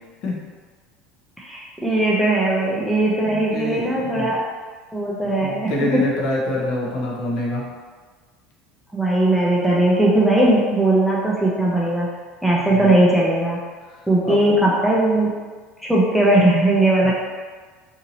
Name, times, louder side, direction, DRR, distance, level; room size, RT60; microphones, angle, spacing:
voice 1, 1.4-4.4 4.9-6.0 8.9-12.1 12.4-13.6 14.1-15.3 15.8-17.1, right 1 dB, ahead, -6 dB, 0.5 m, -18 dB
voice 2, 3.3-4.3 5.4-7.6 12.7-12.9 14.2-14.5 17.0-17.1, left 1 dB, 55° left, -3 dB, 0.7 m, -26 dB
2.8 x 2.7 x 2.7 m, 1.4 s
cardioid pair, 145°, 0 cm